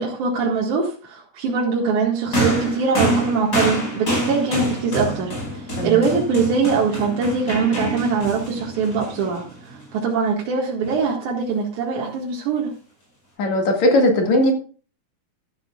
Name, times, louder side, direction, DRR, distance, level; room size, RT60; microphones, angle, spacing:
voice 1, 0.0-12.7, right 5 dB, 80° right, -3 dB, 3.2 m, -22 dB
sound 1, 2.3-9.8 10.8-11.0, right 1 dB, 35° left, 6.1 m, -26 dB
voice 2, 13.4-14.5, left 1 dB, 70° left, 2 dB, 3.3 m, -18 dB
12.5 x 12.0 x 2.4 m, 0.38 s
omnidirectional pair, 3.3 m